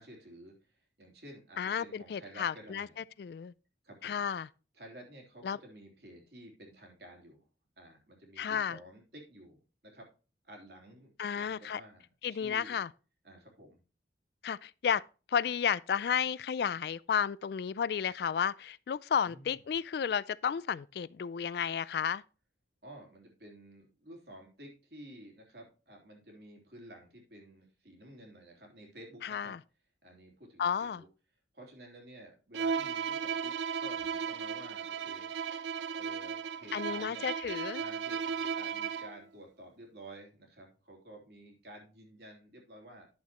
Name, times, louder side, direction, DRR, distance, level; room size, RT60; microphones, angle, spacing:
voice 1, 0.0-3.0 3.8-4.2 4.7-7.4 7.8-10.1 10.4-12.8 13.2-13.8 19.2-19.6 22.8-29.6 30.0-31.1 31.5-33.5 33.8-35.3 35.9-37.3 37.8-43.1, right 1 dB, 60° right, 3.2 m, -52 dB
voice 2, 1.6-2.9 3.2-3.5 4.0-4.5 5.4-5.6 8.4-8.8 11.2-11.8 12.2-12.9 14.4-15.0 15.3-22.2 29.2-29.6 30.6-31.0 36.7-37.8, left 7 dB, 60° left, 0.3 m, -32 dB
Bowed string instrument, 32.5-39.2, right 6 dB, 75° right, 0.5 m, -35 dB
10.5 x 7.2 x 3.0 m
head